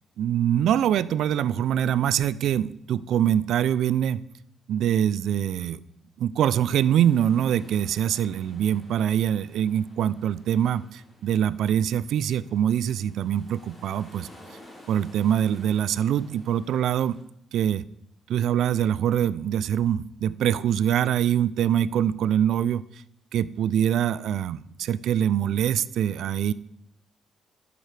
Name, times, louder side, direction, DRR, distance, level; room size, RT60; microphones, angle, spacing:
voice 1, 0.2-4.2 4.7-5.8 6.2-14.3 14.9-17.2 17.5-17.8 18.3-22.8 23.3-26.5, right 10 dB, 75° right, 18 dB, 0.3 m, -24 dB
sound 1, 6.6-17.2, left 1 dB, 15° left, 4.0 m, -53 dB
11.0 x 7.8 x 3.3 m, 0.76 s
cardioid pair, 90°, 0 cm